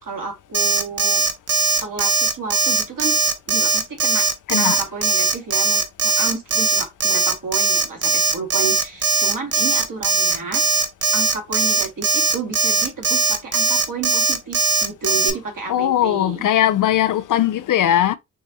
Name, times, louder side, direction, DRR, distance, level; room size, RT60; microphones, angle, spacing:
voice 1, 0.0-1.2 1.8-3.2 3.5-4.3 4.6-10.6 11.1-16.4, right 4 dB, 55° right, 1.9 m, -31 dB
Alarm, 0.5-15.3, right 4 dB, 40° right, 1.0 m, -19 dB
voice 2, 4.5-4.8 15.7-18.2, left 11 dB, 55° left, 0.5 m, -19 dB
4.8 x 2.7 x 2.6 m
supercardioid pair, 45°, 38 cm